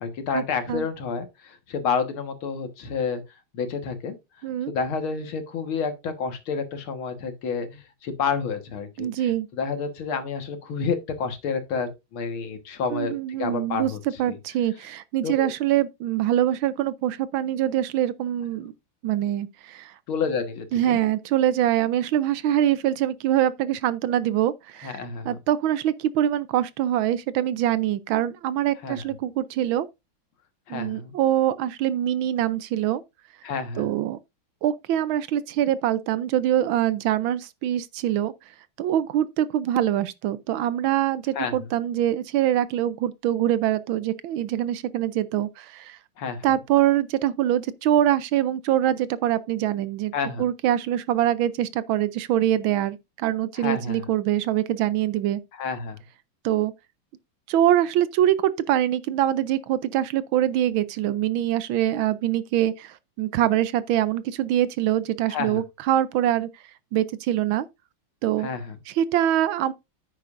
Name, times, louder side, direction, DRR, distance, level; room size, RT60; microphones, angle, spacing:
voice 1, 0.0-3.2 3.5-4.2 4.7-9.1 9.5-13.1 13.4-14.0 14.3-14.4 15.2-15.5 20.1-21.0 24.8-25.4 28.8-29.0 30.7-31.2 33.4-33.9 41.4-41.5 46.2-46.5 50.1-50.5 53.6-54.1 55.6-56.0 65.3-65.6 68.4-68.8, left 5 dB, 75° left, 2.3 m, -29 dB
voice 2, 4.4-4.7 9.0-9.5 12.9-13.9 14.2-18.7 19.0-19.9 20.7-25.0 25.2-29.9 30.7-33.0 33.8-34.2 34.6-38.3 38.8-46.0 46.4-50.1 50.4-55.4 56.4-56.7 57.5-66.5 66.9-67.7 68.2-68.5 68.9-69.7, right 12 dB, 75° right, 1.4 m, -24 dB
9.8 x 9.2 x 2.5 m
omnidirectional pair, 2.3 m